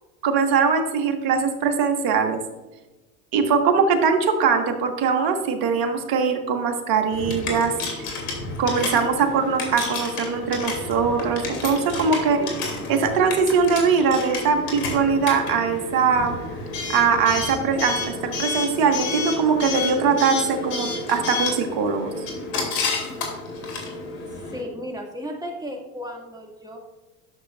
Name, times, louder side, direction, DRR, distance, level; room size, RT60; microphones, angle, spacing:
voice 1, 0.2-2.4 3.3-7.7 8.6-12.4 12.9-16.4 16.9-22.1, right 5 dB, 55° right, 5 dB, 1.6 m, -21 dB
Coin (dropping) / Alarm, 7.1-24.6, left 3 dB, 70° left, 2.7 m, -30 dB
voice 2, 12.4-12.7 24.3-26.8, equal, 10° right, 0 dB, 2.1 m, -35 dB
11.5 x 6.7 x 2.4 m, 1.1 s
hypercardioid pair, 85°, 44 cm